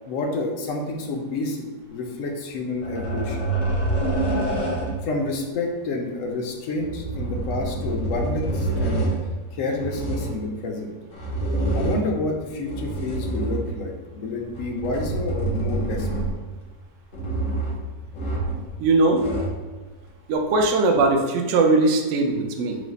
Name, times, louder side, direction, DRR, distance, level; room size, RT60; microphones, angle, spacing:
voice 1, 0.1-3.5 5.0-9.1 9.5-11.0 11.7-16.1, left 3 dB, 70° left, 2 dB, 0.8 m, -29 dB
sound 1, 2.8-5.1 6.7-9.2 9.7-10.4 11.1-12.2 12.6-13.9 14.5-16.5 17.1-17.8 18.1-18.7 19.0-19.6 20.5-20.6, right 2 dB, 90° left, 1.5 m, -26 dB
voice 2, 18.8-19.3 20.3-22.8, right 3 dB, 70° right, 3 dB, 0.7 m, -20 dB
4.8 x 2.1 x 3.9 m, 1.3 s
omnidirectional pair, 1.8 m